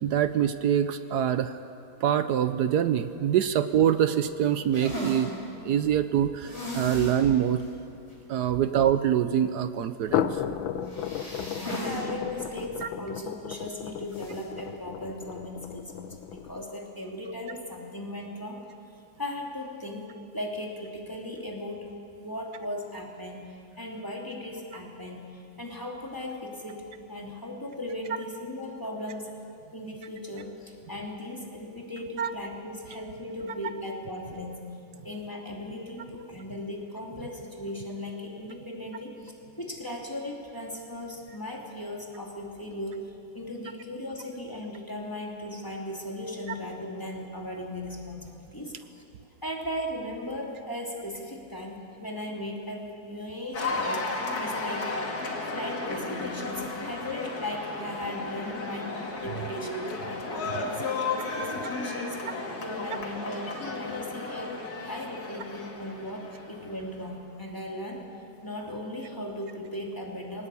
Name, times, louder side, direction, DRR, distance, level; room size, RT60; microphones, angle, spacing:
voice 1, 0.0-1.5 2.0-5.3 5.6-7.6 8.3-10.3 32.2-32.3, right 9 dB, 65° right, 11 dB, 1.1 m, -24 dB
sound 1, 4.2-8.8 9.9-16.7, left 9 dB, 85° left, 1.6 m, -35 dB
sound 2, 4.7-5.3 6.4-7.2 7.6-7.7 8.1-8.2 10.8-12.0 12.4-12.5 14.1-14.4, right 1 dB, 35° left, 5.6 m, -36 dB
voice 2, 11.4-18.7 19.2-21.9 22.2-23.4 23.8-29.3 29.7-34.6 35.0-39.3 39.6-49.0 49.4-62.2 62.6-64.6 64.9-68.0 68.4-70.5, left 1 dB, 10° left, -1 dB, 2.6 m, -37 dB
Cheering / Applause, 53.5-66.9, left 3 dB, 50° left, 2.5 m, -34 dB
20.5 x 19.0 x 8.4 m, 2.6 s
omnidirectional pair, 2.1 m